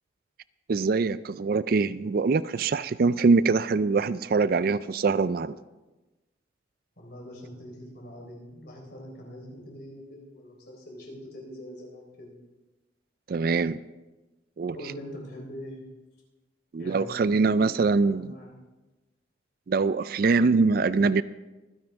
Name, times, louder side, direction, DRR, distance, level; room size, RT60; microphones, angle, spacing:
voice 1, 0.7-5.6 13.3-13.8 14.6-14.9 16.7-18.3 19.7-21.2, right 4 dB, 50° right, 16 dB, 0.4 m, -23 dB
voice 2, 7.0-12.3 14.7-15.8 16.8-18.6, equal, 55° left, -1 dB, 4.0 m, -43 dB
24.5 x 10.5 x 3.5 m, 1.1 s
head